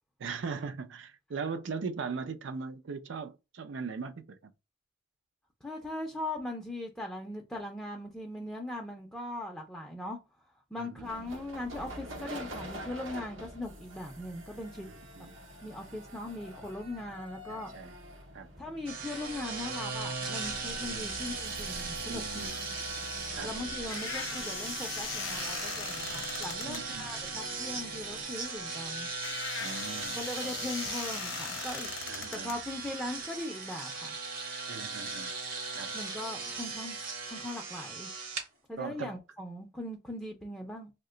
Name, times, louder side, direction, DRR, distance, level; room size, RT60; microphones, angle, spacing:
voice 1, 0.2-4.4 10.8-11.3 14.8-15.3 17.5-17.9 18.3-18.5 20.8-21.1 22.1-22.6 23.3-23.9 26.6-27.1 29.6-30.5 32.1-32.5 34.7-35.3 35.7-35.9 38.8-39.1, right 5 dB, 70° right, 0.5 m, -40 dB
voice 2, 5.6-10.2 10.7-14.9 15.6-17.7 18.6-22.5 23.4-29.1 30.1-31.9 32.3-34.1 35.9-37.0 37.3-38.1 38.7-40.9, left 1 dB, 5° left, 0.5 m, -39 dB
sound 1, 11.0-28.4, equal, 85° right, 0.8 m, -47 dB
sound 2, 18.9-38.5, right 4 dB, 50° right, 0.8 m, -38 dB
sound 3, 23.3-33.3, left 11 dB, 80° left, 0.3 m, -41 dB
2.8 x 2.2 x 3.7 m
head